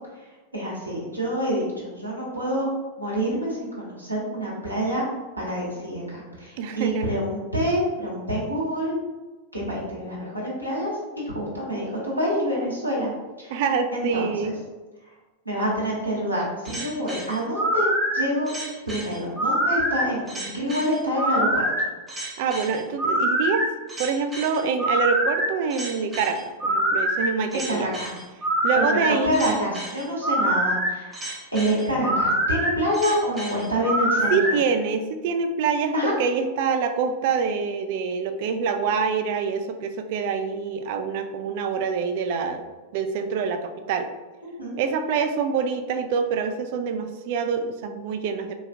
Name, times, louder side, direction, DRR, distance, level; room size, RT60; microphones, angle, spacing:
voice 1, 0.5-2.7 3.0-5.0 5.4-8.9 9.5-13.1 13.4-13.5 13.9-14.5 15.4-18.5 18.9-21.6 27.5-28.1 28.7-34.4 35.9-36.1 44.6-44.8, equal, 90° right, -6 dB, 1.1 m, -27 dB
voice 2, 6.6-7.1 13.5-14.5 22.4-23.6 24.0-27.9 28.6-29.4 34.3-42.6 42.9-44.1 44.8-48.5, right 5 dB, 50° right, 7 dB, 0.3 m, -25 dB
sound 1, 16.6-34.5, right 1 dB, 15° right, 0.8 m, -25 dB
3.9 x 2.4 x 2.6 m, 1.2 s
figure-of-eight pair, 90°, 0 cm